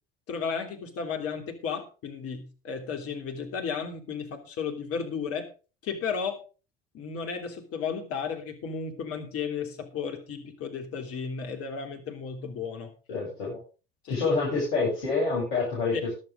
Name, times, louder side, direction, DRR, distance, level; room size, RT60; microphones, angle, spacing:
voice 1, 0.3-5.5 5.8-6.4 6.9-12.9 14.0-14.2 15.9-16.0, left 6 dB, 50° left, 5 dB, 3.1 m, -34 dB
voice 2, 13.1-13.6 14.1-16.0, left 4 dB, 65° left, -6 dB, 7.2 m, -27 dB
14.5 x 11.0 x 3.7 m, 0.33 s
figure-of-eight pair, 60°, 30 cm